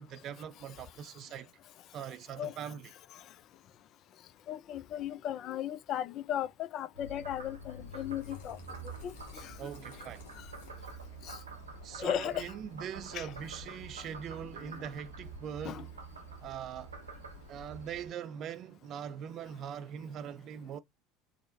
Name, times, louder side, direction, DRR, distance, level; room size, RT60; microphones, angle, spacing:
voice 1, 0.0-1.5 1.9-2.9 9.6-10.2 11.8-15.9 16.4-16.9 17.5-20.8, right 8 dB, 45° right, 0.4 m, -42 dB
voice 2, 4.5-8.6 8.8-9.7 10.0-10.1 10.4-10.5 11.2-11.4 12.0-12.5 13.1-13.3 14.0-14.1 14.6-14.8 15.6-15.9, left 10 dB, 50° left, 0.4 m, -37 dB
Frog, 6.9-18.1, right 2 dB, 85° right, 0.6 m, -47 dB
sound 1, 7.8-15.0, left 6 dB, 70° left, 0.9 m, -59 dB
3.6 x 2.1 x 2.6 m
figure-of-eight pair, 70°, 0 cm